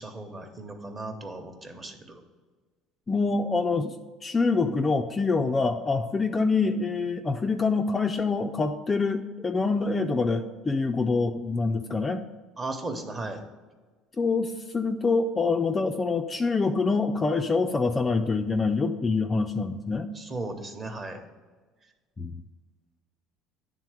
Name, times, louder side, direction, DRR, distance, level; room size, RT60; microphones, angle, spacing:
voice 1, 0.0-2.2 12.6-13.4 20.1-21.2, right 2 dB, 20° right, 5 dB, 0.9 m, -36 dB
voice 2, 3.1-4.0 4.2-12.3 14.2-20.1 22.2-22.4, left 4 dB, 20° left, 4 dB, 0.3 m, -25 dB
9.8 x 3.7 x 4.8 m, 1.4 s
cardioid pair, 140°, 0 cm